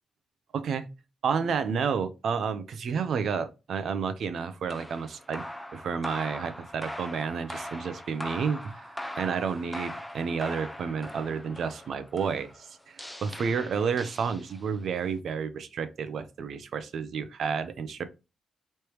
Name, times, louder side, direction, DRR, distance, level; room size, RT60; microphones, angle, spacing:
voice 1, 0.5-0.9 1.2-5.4 5.7-18.0, right 6 dB, 65° right, 0.7 m, -31 dB
sound 1, 4.7-14.8, left 1 dB, 5° left, 0.6 m, -41 dB
4.8 x 3.3 x 3.0 m
cardioid pair, 115°, 0 cm